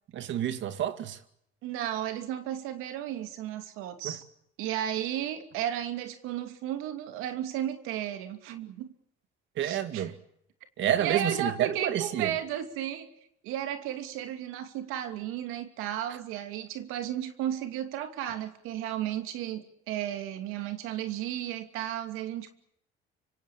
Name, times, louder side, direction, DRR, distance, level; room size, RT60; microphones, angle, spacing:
voice 1, 0.1-1.2 4.0-4.2 9.6-10.2 10.8-12.4, right 11 dB, 65° right, 2.3 m, -29 dB
voice 2, 1.6-4.3 4.6-8.9 9.6-10.1 11.0-13.1 13.4-22.5, right 11 dB, 85° right, 2.7 m, -34 dB
26.0 x 24.5 x 7.4 m
cardioid pair, 110°, 21 cm